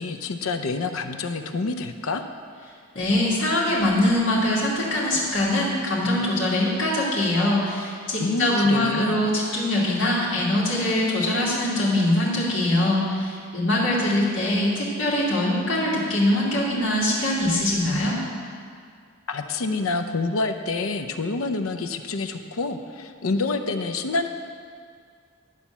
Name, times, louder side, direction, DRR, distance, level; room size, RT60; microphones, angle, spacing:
voice 1, 0.0-2.2 8.2-9.2 19.3-24.3, left 3 dB, 80° left, 8 dB, 0.6 m, -27 dB
voice 2, 2.9-18.2, left 1 dB, 60° left, -6 dB, 2.4 m, -23 dB
11.0 x 4.3 x 7.1 m, 2.1 s
head